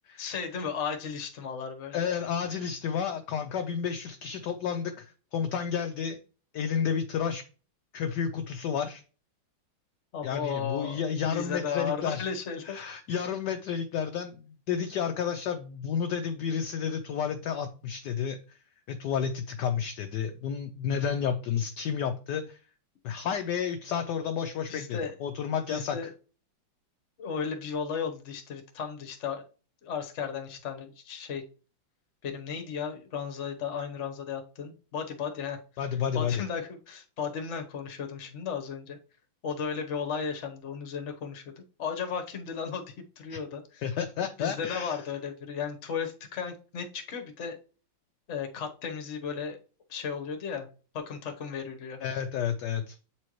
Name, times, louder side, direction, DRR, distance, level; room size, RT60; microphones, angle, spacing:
voice 1, 0.2-2.0 10.1-11.0 11.3-12.8 24.7-25.1 25.7-26.1 27.2-29.4 29.8-31.4 32.2-35.6 36.1-39.0 39.4-43.8 44.4-47.6 48.3-49.6 49.9-50.7 50.9-52.0, left 6 dB, 45° left, 4 dB, 1.1 m, -35 dB
voice 2, 1.9-6.2 6.5-7.4 7.9-9.0 10.2-12.3 12.7-14.4 14.7-18.4 18.9-22.6 23.0-26.0 35.8-36.4 43.3-43.4 43.8-45.0 52.0-53.0, left 7 dB, 70° left, 6 dB, 1.1 m, -31 dB
8.4 x 4.4 x 3.0 m, 0.36 s
omnidirectional pair, 2.2 m